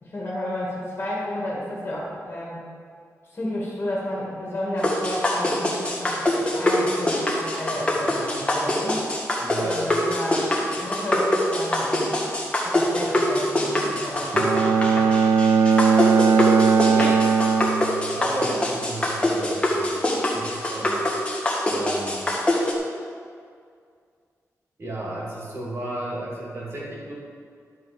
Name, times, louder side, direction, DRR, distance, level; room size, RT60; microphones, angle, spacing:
voice 1, 0.0-2.6 3.2-9.0 9.6-12.2 12.6-15.1 17.0-17.1, left 1 dB, 40° left, -6 dB, 2.1 m, -32 dB
sound 1, 4.8-22.7, left 1 dB, 20° left, 1.3 m, -24 dB
voice 2, 9.4-9.9 16.2-17.1 18.1-20.1 20.3-21.0 21.7-22.4 24.8-27.1, right 1 dB, 45° right, -4 dB, 2.2 m, -34 dB
Bowed string instrument, 14.3-18.4, right 5 dB, 75° right, 0.7 m, -19 dB
11.5 x 5.5 x 5.8 m, 2.1 s
wide cardioid pair, 170°, 6 cm